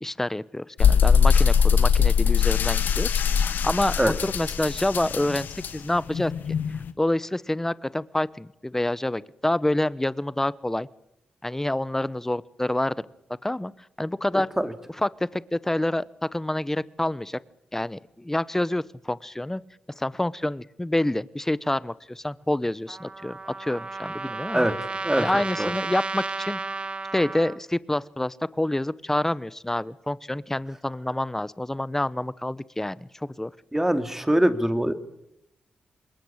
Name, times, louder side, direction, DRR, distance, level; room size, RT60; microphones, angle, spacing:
voice 1, 0.0-6.3 7.0-10.9 11.4-12.9 13.4-13.7 14.0-14.5 14.9-17.4 17.7-19.6 20.0-24.7 25.2-26.6 27.1-33.5, left 1 dB, 10° left, 19 dB, 1.0 m, -27 dB
sound 1, 0.8-6.9, left 7 dB, 80° left, 1.4 m, -21 dB
voice 2, 14.3-14.7 24.5-24.7 25.0-25.3 25.6-25.7 33.7-34.9, right 1 dB, 10° right, 10 dB, 2.5 m, -23 dB
Trumpet, 22.9-27.6, right 3 dB, 35° right, 1.2 m, -33 dB
27.5 x 22.0 x 8.8 m, 0.84 s
cardioid pair, 70°, 3 cm